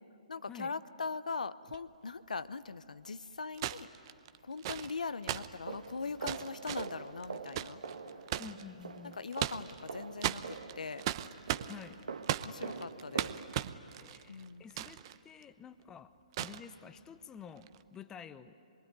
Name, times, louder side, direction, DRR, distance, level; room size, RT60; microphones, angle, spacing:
voice 1, 0.3-3.9 4.4-7.8 9.0-11.0 12.4-13.4 14.3-14.7, left 4 dB, 80° left, 14 dB, 0.7 m, -41 dB
sound 1, 1.7-1.8 3.5-8.6 9.1-9.9 10.2-15.2 15.4-15.5 16.3-16.6 17.6-17.8, right 12 dB, 40° right, 0.8 m, -37 dB
sound 2, 5.3-13.5, right 5 dB, 75° right, 1.7 m, -45 dB
voice 2, 8.4-9.2 11.7-12.0 13.9-16.1 16.4-18.5, left 7 dB, 15° left, 12 dB, 0.8 m, -50 dB
25.0 x 22.0 x 9.5 m, 2.7 s
figure-of-eight pair, 135°, 4 cm